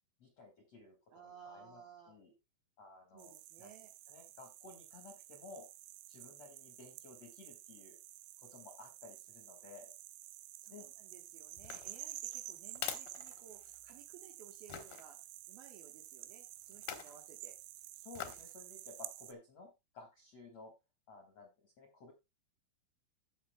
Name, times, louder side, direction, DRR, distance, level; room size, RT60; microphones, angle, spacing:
voice 1, 0.2-2.3 2.8-3.7 4.1-5.7 6.1-8.0 8.4-9.9 10.7-10.9 18.0-20.7 21.1-22.1, left 3 dB, 55° left, 3 dB, 1.9 m, -55 dB
voice 2, 1.1-2.2 3.1-3.9 10.6-15.2 15.5-17.5, right 8 dB, 70° right, 1 dB, 2.4 m, -58 dB
sound 1, 3.2-19.3, right 16 dB, 90° right, 2.6 m, -51 dB
sound 2, 11.6-14.0 14.7-15.0 16.7-17.2 18.1-18.5 19.0-19.1, left 10 dB, 70° left, 2.5 m, -45 dB
15.0 x 6.7 x 2.3 m, 0.24 s
omnidirectional pair, 5.8 m